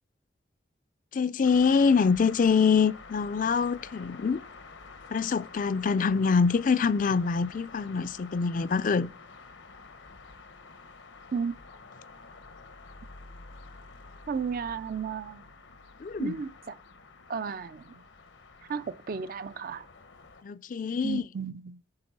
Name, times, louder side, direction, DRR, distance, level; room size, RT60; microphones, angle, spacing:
voice 1, 1.1-4.4 5.1-9.1 16.0-16.3 20.4-21.2, left 5 dB, 45° left, 0.4 m, -25 dB
sound 1, 1.4-20.4, left 4 dB, 90° left, 1.0 m, -49 dB
voice 2, 14.3-15.4 16.2-16.8 17.3-18.1 18.6-19.9 21.0-21.8, right 6 dB, 50° right, 0.4 m, -34 dB
9.5 x 3.9 x 6.0 m
head